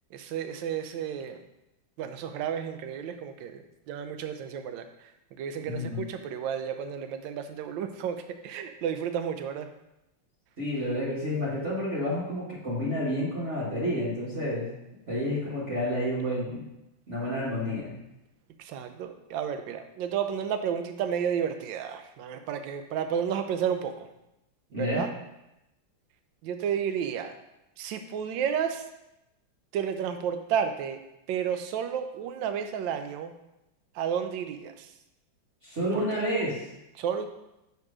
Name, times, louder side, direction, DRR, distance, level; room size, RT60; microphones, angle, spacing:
voice 1, 0.1-1.4 2.0-9.7 18.6-24.1 24.8-25.1 26.4-27.3 27.8-28.9 29.7-31.0 31.3-33.3 33.9-34.9 35.9-36.3 36.9-37.3, right 8 dB, 75° right, 8 dB, 1.2 m, -32 dB
voice 2, 5.7-6.0 10.6-14.7 15.1-16.6 17.1-17.9 24.7-25.0 35.6-36.7, equal, 40° right, -9 dB, 1.5 m, -30 dB
6.7 x 3.6 x 4.8 m, 0.90 s
omnidirectional pair, 2.3 m